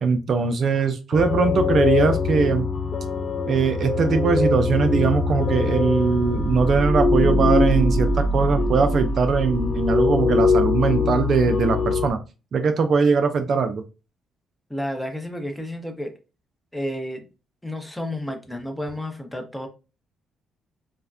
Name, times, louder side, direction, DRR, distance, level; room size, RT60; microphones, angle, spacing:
voice 1, 0.0-2.7 3.5-12.2 12.5-13.8, right 5 dB, 55° right, 7 dB, 0.3 m, -21 dB
sound 1, 1.1-12.1, left 3 dB, 50° left, 0.4 m, -22 dB
voice 2, 14.7-16.1 16.7-17.3 17.6-19.7, left 1 dB, 5° left, 5 dB, 0.6 m, -31 dB
3.2 x 2.1 x 2.4 m, 0.30 s
cardioid pair, 90°, 0 cm